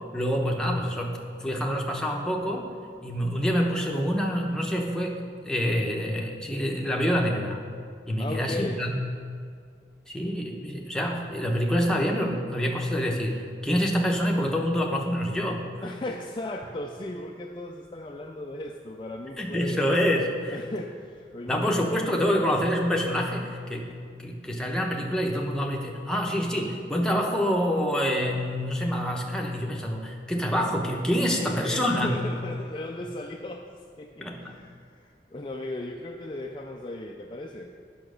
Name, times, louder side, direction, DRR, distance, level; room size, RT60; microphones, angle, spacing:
voice 1, 0.1-2.7 3.0-7.6 8.1-9.0 10.1-15.7 19.4-20.6 21.5-32.2 34.2-34.5, equal, 5° left, -1 dB, 0.8 m, -26 dB
voice 2, 8.2-8.8 15.8-19.9 20.5-21.8 31.4-33.6 34.0-37.7, left 1 dB, 25° left, 2 dB, 0.4 m, -36 dB
8.8 x 5.9 x 6.3 m, 2.1 s
head